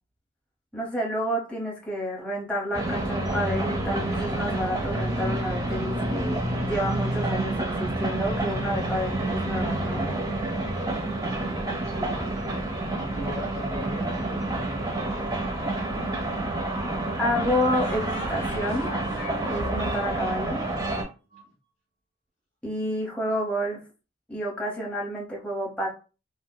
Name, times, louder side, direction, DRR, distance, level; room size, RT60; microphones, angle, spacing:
voice 1, 0.7-10.1 17.2-18.9 19.5-20.6 22.6-23.8 24.3-25.9, equal, 5° left, -3 dB, 0.9 m, -29 dB
sound 1, 2.7-21.0, right 1 dB, 20° right, 0.5 m, -28 dB
voice 2, 10.6-12.6 13.0-15.2 21.3-21.5, equal, 40° left, -8 dB, 1.3 m, -41 dB
sound 2, 15.6-16.5 17.8-21.4, left 1 dB, 80° left, 0.9 m, -39 dB
3.9 x 2.1 x 2.2 m, 0.33 s
head